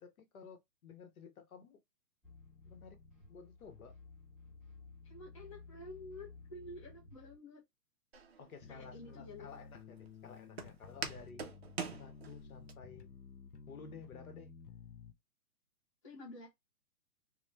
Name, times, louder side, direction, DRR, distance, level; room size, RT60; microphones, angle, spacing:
voice 1, 0.0-1.8 2.6-3.0 3.3-3.9 8.4-11.4 12.0-13.1 13.7-14.5, left 6 dB, 60° left, 1.0 m, -53 dB
sound 1, 2.2-7.4, left 4 dB, ahead, 1.3 m, -55 dB
voice 2, 5.0-7.6 8.7-9.5 16.0-16.5, left 2 dB, 20° left, 0.5 m, -50 dB
Walk footsteps, 8.1-12.7, right 5 dB, 45° right, 0.4 m, -45 dB
sound 2, 8.6-15.1, left 5 dB, 90° left, 0.8 m, -54 dB
3.0 x 2.1 x 3.1 m
hypercardioid pair, 165°, 48 cm